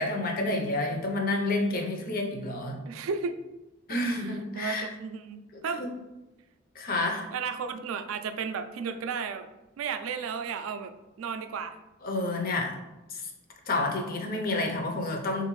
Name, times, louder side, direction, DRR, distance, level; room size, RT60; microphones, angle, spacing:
voice 1, 0.0-2.8 3.9-4.9 5.5-5.9 6.8-7.3 12.0-12.8 13.1-13.2 13.7-15.5, left 2 dB, 45° left, 3 dB, 0.5 m, -29 dB
voice 2, 2.8-3.4 3.9-5.8 7.3-9.5 9.8-10.9 11.2-11.8, right 6 dB, 90° right, 10 dB, 0.3 m, -34 dB
3.5 x 2.5 x 3.0 m, 1.0 s
head